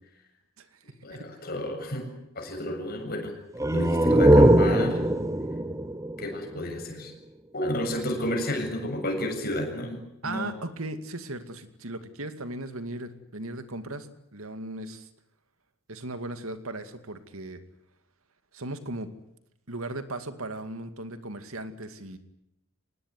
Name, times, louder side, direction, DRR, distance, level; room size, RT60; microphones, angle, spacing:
voice 1, 1.0-2.1 2.3-3.4 3.7-5.0 6.2-7.1 7.5-10.5, left 1 dB, 45° left, 4 dB, 7.3 m, -31 dB
sound 1, 3.5-7.1, right 1 dB, 15° right, 1.0 m, -21 dB
voice 2, 10.2-15.1 15.9-17.6 18.5-19.1 19.7-22.2, right 2 dB, 75° right, 9 dB, 2.4 m, -37 dB
25.0 x 20.0 x 9.6 m, 0.82 s
head